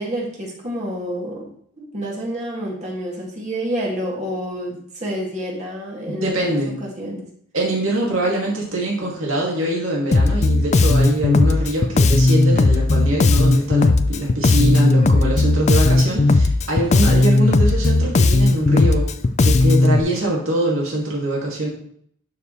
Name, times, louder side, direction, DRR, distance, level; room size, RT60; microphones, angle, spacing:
voice 1, 0.0-1.5 1.8-7.2, equal, 35° right, -3 dB, 2.3 m, -29 dB
voice 2, 6.2-6.7 7.5-19.1 19.4-21.7, right 1 dB, 85° right, -3 dB, 2.4 m, -23 dB
Bass guitar, 10.1-20.0, left 2 dB, 35° left, 0.4 m, -16 dB
12.0 x 4.9 x 3.2 m, 0.63 s
head